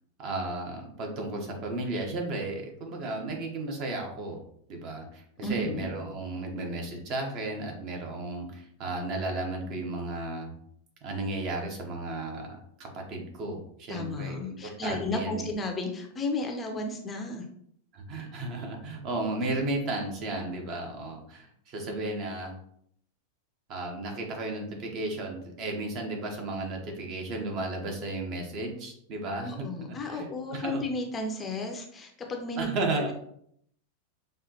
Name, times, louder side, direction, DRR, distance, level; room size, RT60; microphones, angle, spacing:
voice 1, 0.2-4.4 4.7-10.5 11.0-15.5 17.9-22.6 23.7-30.8 32.6-33.1, right 2 dB, 40° right, 1 dB, 0.9 m, -34 dB
voice 2, 5.4-5.9 13.9-17.4 29.4-32.7 33.0-33.1, left 2 dB, 20° left, 2 dB, 0.6 m, -33 dB
5.5 x 2.4 x 2.8 m, 0.69 s
figure-of-eight pair, 90°, 0 cm